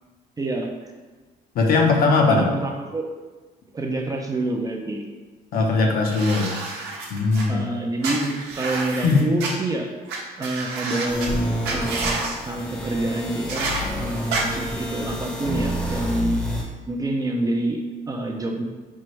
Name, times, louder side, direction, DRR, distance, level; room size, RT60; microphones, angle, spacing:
voice 1, 0.4-0.7 2.3-3.1 3.7-5.0 7.5-9.9 10.4-16.4 16.9-18.6, right 2 dB, 20° right, 2 dB, 0.4 m, -27 dB
voice 2, 1.5-2.5 5.5-6.5 7.1-7.6 9.0-9.2, left 3 dB, 60° left, 1 dB, 0.7 m, -19 dB
sound 1, 6.1-7.4 8.0-9.5 10.1-10.2 10.4-11.3 11.6-12.3 13.5-13.8 14.3-14.4, right 3 dB, 85° right, 0.8 m, -29 dB
sound 2, 11.1-16.6, equal, 5° left, 0.7 m, -29 dB
4.5 x 2.5 x 3.1 m, 1.3 s
cardioid pair, 110°, 17 cm